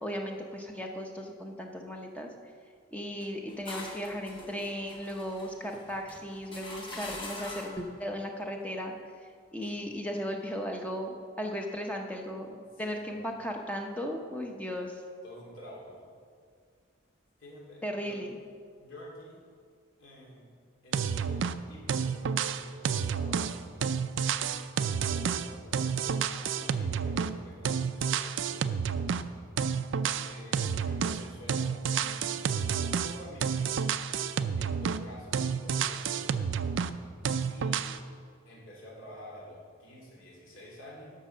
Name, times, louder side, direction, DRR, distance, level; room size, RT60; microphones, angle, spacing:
voice 1, 0.0-2.3 2.9-15.0 17.8-18.4, equal, 5° left, 2 dB, 0.7 m, -36 dB
sound 1, 3.2-7.9, left 2 dB, 25° left, 1.1 m, -44 dB
voice 2, 5.6-6.0 9.6-9.9 12.2-12.3 12.7-13.2 15.2-16.1 17.4-18.2 18.8-19.4 20.0-20.5 20.8-23.6 24.7-28.7 30.2-33.8 34.6-36.4 37.5-37.9 38.4-41.1, equal, 70° left, -3 dB, 2.9 m, -50 dB
sound 2, 20.9-21.6 21.9-27.4 27.7-29.3 29.6-31.2 31.5-35.1 35.3-37.0 37.3-38.0, right 6 dB, 60° right, 0.4 m, -30 dB
11.5 x 5.3 x 6.6 m, 2.1 s
head